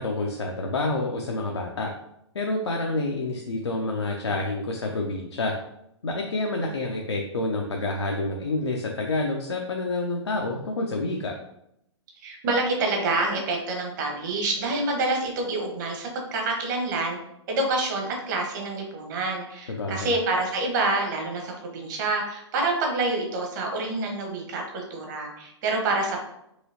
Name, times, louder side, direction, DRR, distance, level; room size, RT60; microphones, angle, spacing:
voice 1, 0.0-1.9 2.3-5.5 6.0-11.3 19.7-20.1, left 2 dB, 70° left, 1 dB, 0.6 m, -28 dB
voice 2, 12.2-17.2 17.5-26.2, right 2 dB, 40° right, 1 dB, 1.1 m, -27 dB
4.8 x 3.1 x 2.8 m, 0.79 s
figure-of-eight pair, 115°, 15 cm